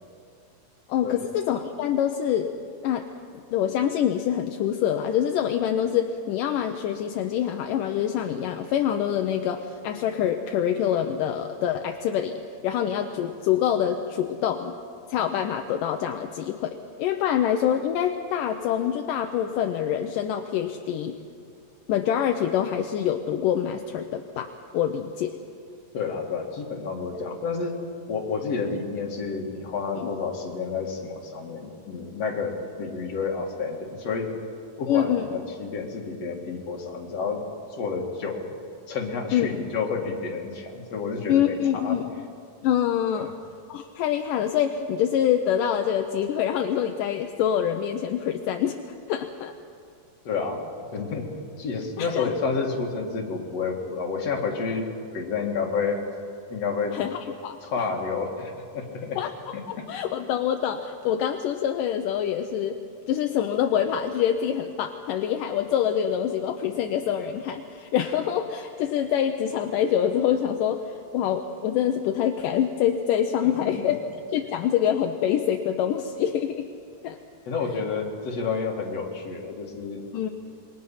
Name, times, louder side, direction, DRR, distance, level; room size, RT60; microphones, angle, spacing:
voice 1, 0.9-2.5 2.8-3.1 3.3-14.8 15.1-21.2 21.9-25.4 30.0-30.1 34.9-35.3 39.3-39.5 41.3-42.3 42.6-43.3 43.7-48.8 49.1-49.5 52.0-52.3 56.9-57.6 59.2-62.8 63.1-74.0 74.3-76.7 77.0-77.2 80.1-80.3, left 9 dB, 75° left, 5 dB, 2.4 m, -25 dB
voice 2, 25.9-27.8 28.1-34.4 34.8-37.4 37.8-38.5 38.9-42.0 43.1-43.3 50.2-50.6 50.9-51.3 51.6-56.0 56.5-57.0 57.6-59.2 59.8-59.9 73.4-73.9 77.5-80.0, left 5 dB, 50° left, 1 dB, 3.0 m, -30 dB
27.0 x 23.0 x 5.7 m, 2.3 s
omnidirectional pair, 4.0 m